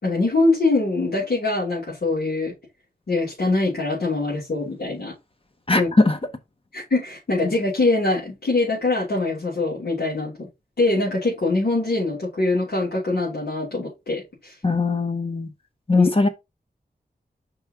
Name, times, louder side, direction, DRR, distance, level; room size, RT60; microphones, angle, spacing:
voice 1, 0.0-2.5 3.1-5.1 5.7-5.9 6.7-10.5 10.8-14.5 15.9-16.1, left 2 dB, 70° left, 3.2 m, -23 dB
voice 2, 5.7-6.2 14.6-15.5 15.9-16.3, left 3 dB, 35° left, 1.0 m, -20 dB
5.4 x 3.5 x 5.5 m
wide cardioid pair, 95°, 17 cm